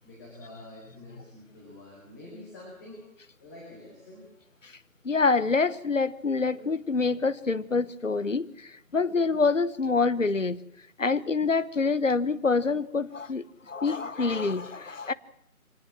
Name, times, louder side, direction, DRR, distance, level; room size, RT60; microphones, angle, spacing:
voice 1, 0.0-3.1 3.4-4.4, left 1 dB, 15° left, 4.5 m, -47 dB
voice 2, 5.0-10.6 11.0-15.1, left 4 dB, 60° left, 1.1 m, -26 dB
24.5 x 18.5 x 7.5 m
figure-of-eight pair, 165°, 43 cm